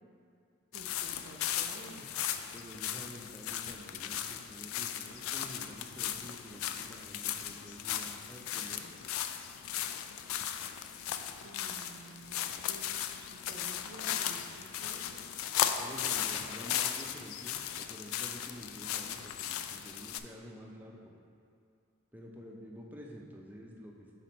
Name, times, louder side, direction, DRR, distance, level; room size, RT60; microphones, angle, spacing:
sound 1, 0.7-20.2, left 10 dB, 90° left, 0.3 m, -37 dB
voice 1, 0.7-2.1 11.4-15.3, right 2 dB, 65° right, -1 dB, 0.5 m, -51 dB
voice 2, 2.5-8.9 15.8-21.1 22.1-24.1, equal, 10° right, -1 dB, 0.4 m, -49 dB
5.9 x 4.2 x 4.1 m, 2.4 s
head